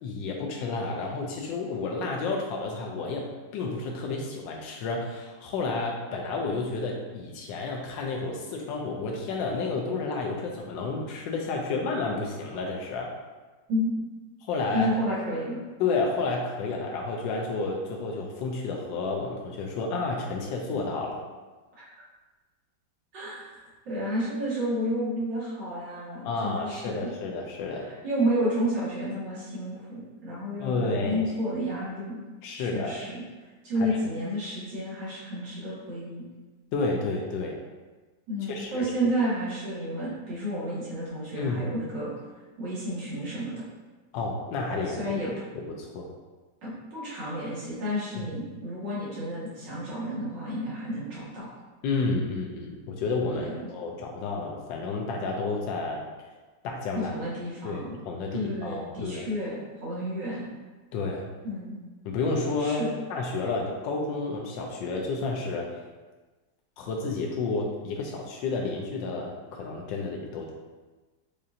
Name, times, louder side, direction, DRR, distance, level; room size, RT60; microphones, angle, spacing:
voice 1, 0.0-3.3 3.5-13.1 14.4-14.9 15.8-21.2 26.2-27.9 30.6-31.4 32.4-33.0 33.8-34.0 36.7-37.6 38.5-38.9 41.3-41.7 44.1-45.0 45.5-46.1 48.2-48.3 51.8-56.0 56.6-57.1 57.6-59.3 60.9-61.3 62.0-62.8 63.1-65.7 66.8-70.5, left 3 dB, 90° left, 0 dB, 1.3 m, -31 dB
voice 2, 14.7-15.6 21.8-21.9 23.1-27.1 27.8-32.2 32.6-33.2 33.6-36.2 38.3-42.1 42.6-43.6 44.9-45.3 46.6-51.5 53.3-53.7 56.9-58.0 58.3-60.5 61.4-61.8 62.6-63.0, equal, 80° right, -9 dB, 2.2 m, -31 dB
6.5 x 2.8 x 2.5 m, 1.3 s
omnidirectional pair, 1.9 m